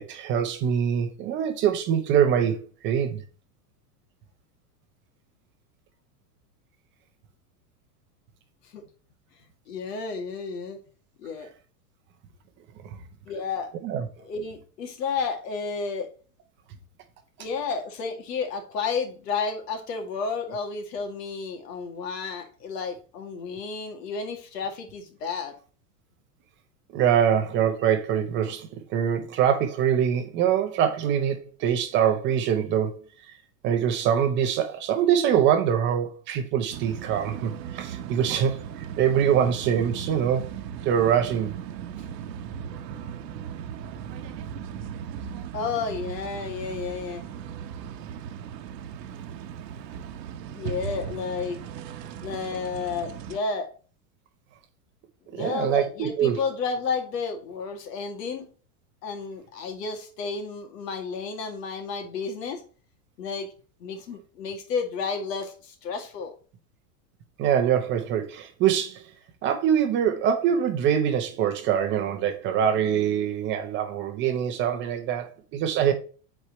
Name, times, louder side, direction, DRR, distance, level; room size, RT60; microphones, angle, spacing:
voice 1, 0.0-2.6 2.8-3.2 13.8-14.1 26.9-33.0 33.6-40.5 40.8-41.6 55.3-56.4 67.4-69.0 69.4-75.9, right 9 dB, 25° right, 0.6 m, -24 dB
voice 2, 9.7-10.8 11.2-11.5 13.3-13.7 14.2-16.1 17.4-25.6 45.5-47.2 50.6-51.6 52.2-53.7 55.3-58.5 59.0-62.6 63.2-63.5 63.8-66.3, left 5 dB, 80° left, 2.3 m, -31 dB
sound 1, 36.7-53.4, right 8 dB, 90° right, 1.1 m, -37 dB
8.1 x 4.4 x 3.0 m
supercardioid pair, 155°, 48 cm